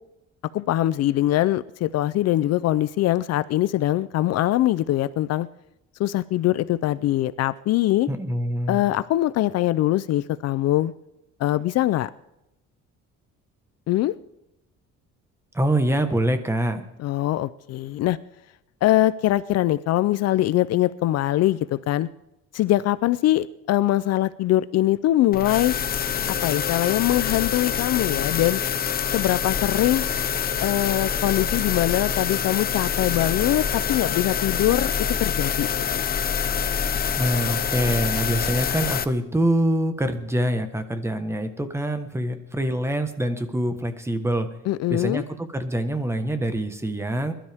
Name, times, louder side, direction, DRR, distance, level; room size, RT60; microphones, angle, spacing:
voice 1, 0.5-5.5 6.0-8.1 8.7-10.9 11.4-12.1 13.9-14.1 17.0-18.2 18.8-22.1 22.5-25.7 26.4-28.6 29.1-30.0 30.6-34.9 35.2-35.7 35.9-36.0 44.7-45.2, left 14 dB, 60° left, 16 dB, 0.5 m, -22 dB
voice 2, 8.1-8.8 15.5-16.9 37.2-44.5 44.9-47.3, right 1 dB, 10° right, 8 dB, 1.3 m, -25 dB
sound 1, 25.3-39.0, left 7 dB, 30° left, 0.8 m, -26 dB
22.0 x 12.5 x 3.5 m, 0.87 s
cardioid pair, 145°, 29 cm